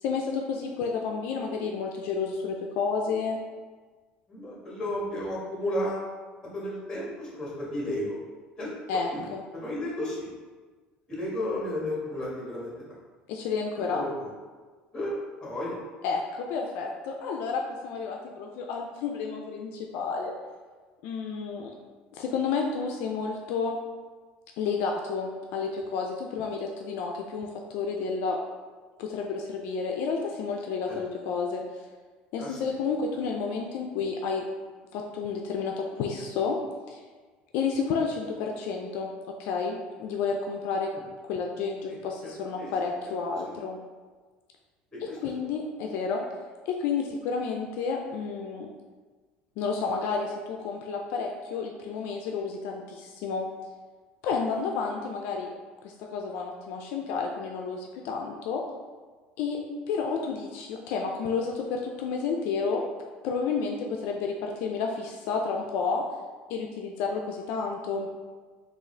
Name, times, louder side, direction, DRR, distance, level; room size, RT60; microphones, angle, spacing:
voice 1, 0.0-3.4 8.9-9.4 13.3-14.0 16.0-20.3 21.0-21.7 22.1-23.8 24.6-28.4 29.0-31.9 32.3-34.4 34.9-36.6 36.9-37.0 37.5-39.1 39.4-40.9 41.3-43.8 45.0-46.2 46.7-48.7 49.6-53.5 54.2-55.5 55.8-58.6 59.4-59.6 59.9-62.8 63.2-66.0 66.5-68.1, left 5 dB, 70° left, 1 dB, 0.3 m, -31 dB
voice 2, 4.3-6.1 6.5-8.2 8.6-9.3 9.6-10.3 11.1-12.7 13.7-14.3 14.9-15.1 15.4-15.8 30.9-31.0 32.4-32.8 40.9-41.0 41.9-42.0 42.2-42.3 42.6-42.7 44.9-45.2, left 1 dB, 20° left, -5 dB, 1.3 m, -33 dB
3.6 x 2.4 x 3.2 m, 1.4 s
cardioid pair, 125°, 4 cm